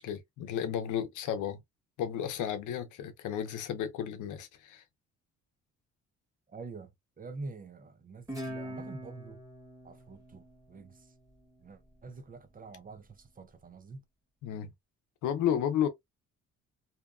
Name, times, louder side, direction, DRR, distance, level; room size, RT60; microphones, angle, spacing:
voice 1, 0.0-1.6 2.0-4.8 14.4-14.7 15.2-15.9, left 9 dB, 85° left, 0.7 m, -32 dB
voice 2, 6.5-6.9 7.2-9.4 9.8-11.1 11.6-14.0, right 3 dB, 30° right, 0.5 m, -46 dB
Guitar, 8.3-11.5, equal, 10° right, 1.4 m, -43 dB
2.7 x 2.2 x 2.3 m
cardioid pair, 90°, 30 cm